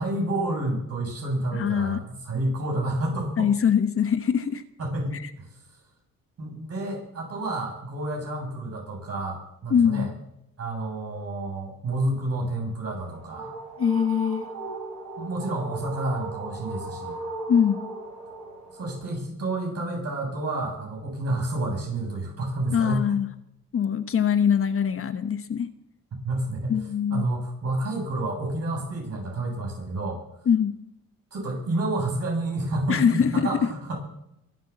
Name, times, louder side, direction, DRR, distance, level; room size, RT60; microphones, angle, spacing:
voice 1, 0.0-3.5 4.8-5.5 6.4-10.1 10.6-13.5 15.2-17.2 18.7-23.1 26.1-26.8 27.1-30.2 31.3-34.0, right 2 dB, 55° right, 0 dB, 7.7 m, -29 dB
voice 2, 1.5-2.0 3.4-4.6 5.1-5.3 9.7-10.1 13.8-14.5 17.5-17.8 22.7-23.3 23.7-25.7 26.7-27.2 30.5-30.7 32.9-33.5, left 7 dB, 45° left, 11 dB, 1.1 m, -23 dB
sound 1, 12.9-19.1, right 2 dB, 80° right, 6.8 m, -37 dB
23.0 x 8.2 x 7.4 m, 0.80 s
cardioid pair, 90°, 30 cm